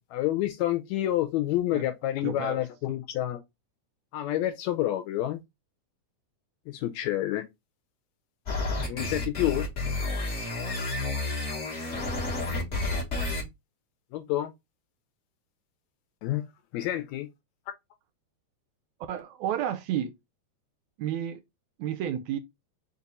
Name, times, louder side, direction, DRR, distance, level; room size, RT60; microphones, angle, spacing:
voice 1, 0.0-3.4 4.1-5.4 6.7-7.5 8.9-9.7 14.1-14.5 16.2-16.5 16.7-17.3, left 14 dB, 80° left, 1.7 m, -28 dB
voice 2, 2.2-2.6 19.1-20.1 21.0-21.4 21.8-22.4, right 10 dB, 80° right, 1.7 m, -31 dB
sound 1, 8.5-13.4, left 2 dB, 45° left, 0.8 m, -30 dB
5.2 x 2.4 x 3.9 m
omnidirectional pair, 3.5 m